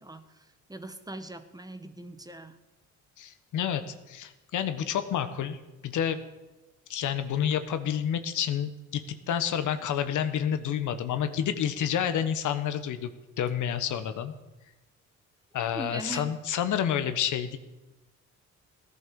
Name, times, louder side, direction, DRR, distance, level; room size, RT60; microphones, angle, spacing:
voice 1, 0.0-2.6 15.7-16.4, right 2 dB, 10° right, 9 dB, 1.4 m, -41 dB
voice 2, 3.2-6.2 6.9-9.0 9.3-13.1 13.4-14.3 15.5-17.6, left 9 dB, 75° left, 10 dB, 1.4 m, -29 dB
16.5 x 11.0 x 7.0 m, 1.1 s
cardioid pair, 90°, 30 cm